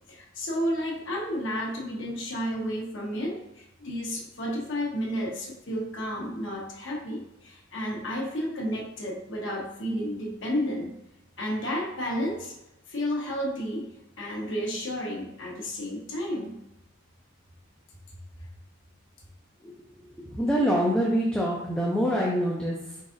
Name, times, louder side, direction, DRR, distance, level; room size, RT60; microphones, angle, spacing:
voice 1, 0.1-11.0 11.4-12.5 12.9-13.9 14.2-16.6, equal, 60° left, -2 dB, 1.1 m, -31 dB
voice 2, 20.2-23.0, equal, 5° left, -4 dB, 0.4 m, -25 dB
4.7 x 3.9 x 2.5 m, 0.89 s
head